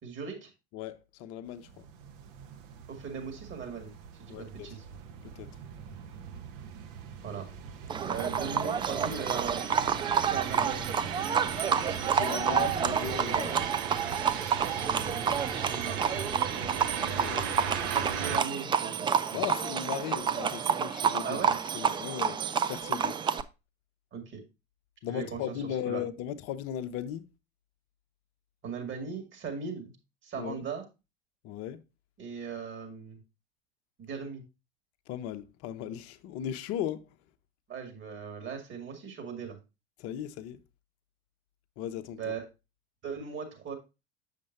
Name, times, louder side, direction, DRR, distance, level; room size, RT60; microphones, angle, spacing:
voice 1, 0.0-0.5 2.9-3.9 4.2-4.8 7.2-7.5 7.9-9.6 10.2-10.9 15.7-16.1 17.9-19.4 21.2-21.6 24.1-24.4 25.1-25.5 25.9-26.0 28.6-29.9 30.2-30.8 32.2-33.2 34.0-34.4 37.7-39.6 42.2-42.4 43.0-43.8, right 6 dB, 35° right, 2.2 m, -38 dB
voice 2, 0.7-1.9 4.3-4.7 5.3-5.5 12.1-13.6 17.0-18.0 19.3-21.4 21.7-22.4 22.7-23.2 25.0-27.3 30.3-30.6 31.4-31.8 35.1-37.1 40.0-40.6 41.8-42.2, left 10 dB, 45° left, 0.7 m, -37 dB
sound 1, 1.6-18.4, right 7 dB, 55° right, 1.1 m, -38 dB
Livestock farm animals working animals, 7.9-23.4, right 7 dB, 15° right, 0.4 m, -29 dB
7.4 x 6.6 x 2.6 m
figure-of-eight pair, 75°, 33 cm